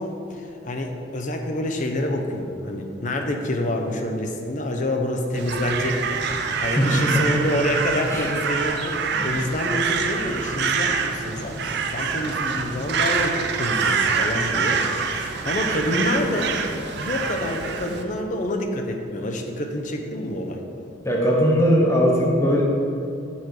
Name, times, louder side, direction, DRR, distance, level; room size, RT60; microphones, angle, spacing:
voice 1, 0.0-16.6 17.0-20.6, left 1 dB, 40° left, 3 dB, 0.6 m, -27 dB
Crow, 5.3-18.0, right 5 dB, 60° right, 0.5 m, -26 dB
voice 2, 6.8-7.2 8.1-8.3 9.1-9.3 21.0-22.6, equal, 15° left, -2 dB, 0.9 m, -19 dB
7.2 x 4.5 x 4.7 m, 2.6 s
head